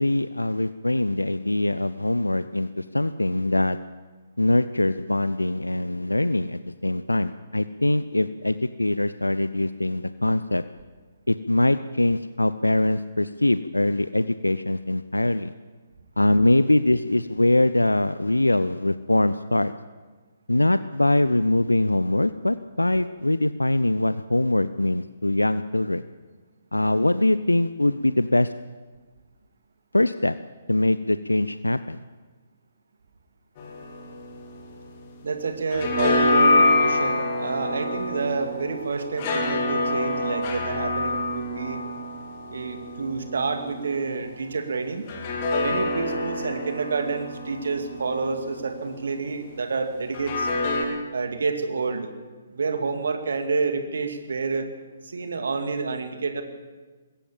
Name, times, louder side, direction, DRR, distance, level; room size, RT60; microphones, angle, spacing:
voice 1, 0.0-3.8 4.4-10.6 11.3-15.5 16.2-19.7 20.5-26.0 26.7-28.5 29.9-30.4 30.7-32.0, left 1 dB, 80° left, 14 dB, 0.6 m, -23 dB
sound 1, 33.6-35.2 35.5-44.2 45.1-49.2 50.1-50.8, left 2 dB, 35° left, 3.8 m, -26 dB
voice 2, 35.2-41.8 42.5-45.0 45.6-50.5 51.1-52.1 52.5-54.7 55.0-56.4, right 4 dB, 60° right, 7 dB, 2.5 m, -29 dB
21.0 x 17.0 x 7.4 m, 1.3 s
figure-of-eight pair, 130°, 0 cm